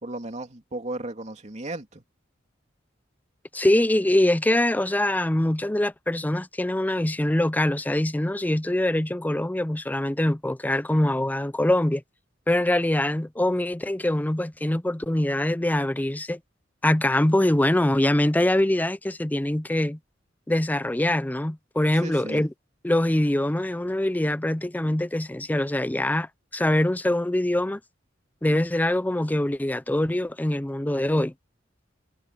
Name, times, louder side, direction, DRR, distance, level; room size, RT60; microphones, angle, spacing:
voice 1, 0.0-2.0 22.0-22.4, right 2 dB, 40° right, 2.8 m, -35 dB
voice 2, 3.5-12.0 12.5-16.4 16.8-20.0 20.5-22.5 22.8-27.8 28.4-31.3, left 1 dB, 10° left, 0.5 m, -23 dB
head